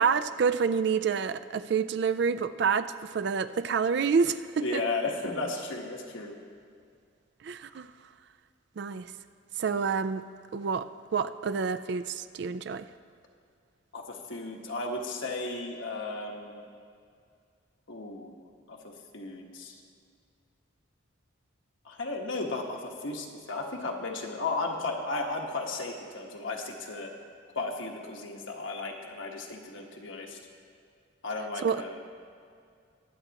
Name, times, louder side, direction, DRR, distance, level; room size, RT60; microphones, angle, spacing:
voice 1, 0.0-4.8 7.4-7.9 8.8-9.1 9.6-10.2 10.5-12.9 31.6-31.8, right 6 dB, 55° right, 12 dB, 0.3 m, -28 dB
voice 2, 4.6-6.4 13.9-16.6 17.9-18.3 18.7-18.8 19.1-19.8 21.8-27.1 27.5-30.4 31.2-32.0, left 3 dB, 75° left, 1 dB, 1.3 m, -34 dB
22.0 x 8.1 x 2.9 m, 2.3 s
head